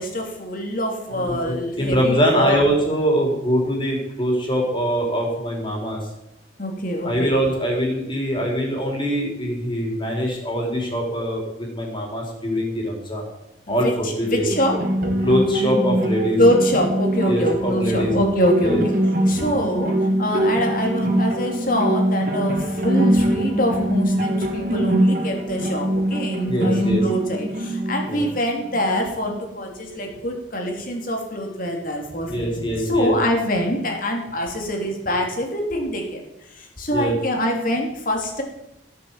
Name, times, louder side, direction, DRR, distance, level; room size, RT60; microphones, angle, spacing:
voice 1, 0.0-2.6 6.6-7.4 13.7-15.2 16.4-18.9 19.3-36.2 36.5-38.4, equal, 45° left, 1 dB, 3.3 m, -24 dB
voice 2, 1.1-6.0 7.0-13.2 13.7-14.4 15.2-16.4 17.2-18.1 18.6-18.8 26.5-27.0 28.1-28.2 32.3-33.1 36.9-37.1, equal, 25° left, -1 dB, 4.4 m, -23 dB
sound 1, 14.4-29.3, right 1 dB, 45° right, 2.5 m, -23 dB
16.5 x 8.5 x 7.4 m, 0.88 s
head